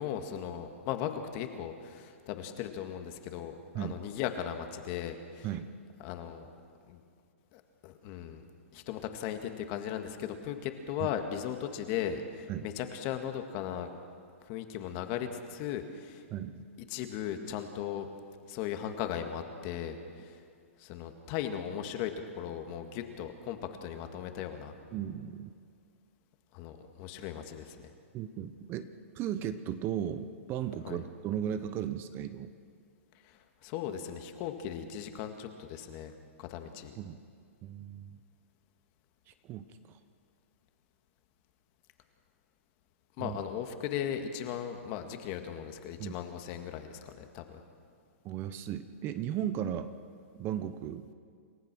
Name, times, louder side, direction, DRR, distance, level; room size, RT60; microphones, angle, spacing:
voice 1, 0.0-5.5 6.0-6.5 6.9-7.0 7.5-8.4 8.7-13.9 14.5-16.2 16.9-18.1 18.5-20.4 20.8-24.7 26.5-27.8 30.8-31.0 33.2-36.1 36.4-36.9 43.2-47.6, left 9 dB, 40° left, 6 dB, 1.9 m, -37 dB
voice 2, 16.3-16.6 24.9-25.5 28.1-28.9 29.1-32.5 37.0-37.2 37.6-38.2 39.3-39.7 43.2-43.4 46.0-46.1 48.2-49.9 50.3-51.1, right 10 dB, 30° right, 11 dB, 0.9 m, -36 dB
28.5 x 15.0 x 6.2 m, 2.2 s
hypercardioid pair, 140°, 7 cm